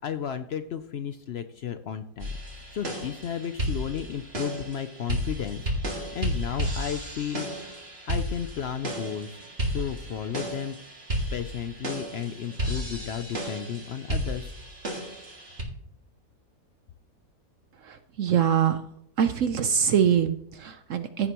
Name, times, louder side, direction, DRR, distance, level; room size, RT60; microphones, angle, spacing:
voice 1, 0.0-2.3 2.7-7.8 8.1-9.4 9.7-10.8 11.3-14.5, left 8 dB, 85° left, 9 dB, 0.5 m, -33 dB
sound 1, 2.2-15.6, equal, 40° right, 2.1 m, -33 dB
voice 2, 17.8-18.8 19.2-21.3, right 8 dB, 60° right, 9 dB, 0.9 m, -24 dB
15.0 x 7.9 x 3.0 m, 0.67 s
omnidirectional pair, 1.8 m